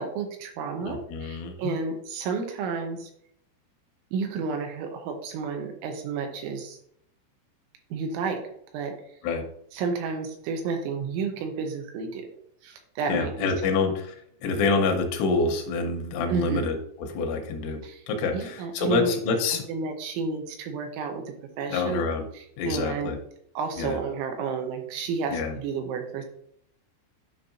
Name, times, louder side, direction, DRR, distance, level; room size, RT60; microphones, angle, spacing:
voice 1, 0.0-3.1 4.1-6.8 7.9-8.4 8.7-8.9 9.7-12.3 12.6-13.5 16.3-16.7 17.8-18.0 18.3-19.1 19.7-22.0 22.3-23.1 23.6-26.3, right 5 dB, 80° right, 4 dB, 3.1 m, -31 dB
voice 2, 0.8-1.8 9.2-9.5 13.1-19.7 21.7-22.3 22.6-23.2 23.8-24.0 25.3-25.6, left 4 dB, 80° left, 4 dB, 3.2 m, -27 dB
10.5 x 5.3 x 2.5 m, 0.69 s
omnidirectional pair, 5.9 m